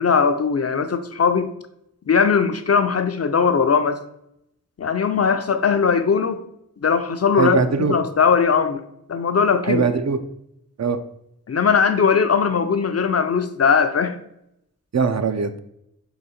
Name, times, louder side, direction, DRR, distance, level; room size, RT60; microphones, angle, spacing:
voice 1, 0.0-1.5 2.1-4.0 4.8-6.4 6.8-7.6 7.9-8.8 9.1-9.8 11.5-14.2, left 6 dB, 45° left, 9 dB, 0.4 m, -19 dB
voice 2, 7.4-7.9 9.7-10.2 10.8-11.0 14.9-15.6, right 5 dB, 50° right, 9 dB, 0.5 m, -21 dB
3.8 x 3.1 x 4.3 m, 0.78 s
wide cardioid pair, 50°, 36 cm